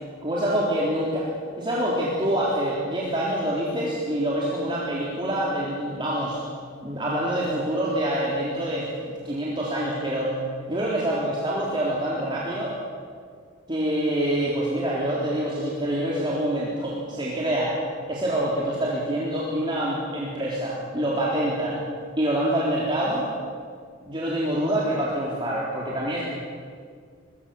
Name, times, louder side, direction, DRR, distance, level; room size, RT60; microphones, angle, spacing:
voice 1, 0.2-1.3 1.6-6.4 6.8-8.9 9.2-10.3 10.7-12.8 13.7-17.8 18.1-21.8 22.2-23.3 24.0-26.2, right 1 dB, 25° right, -5 dB, 3.7 m, -26 dB
23.5 x 23.0 x 7.1 m, 2.1 s
head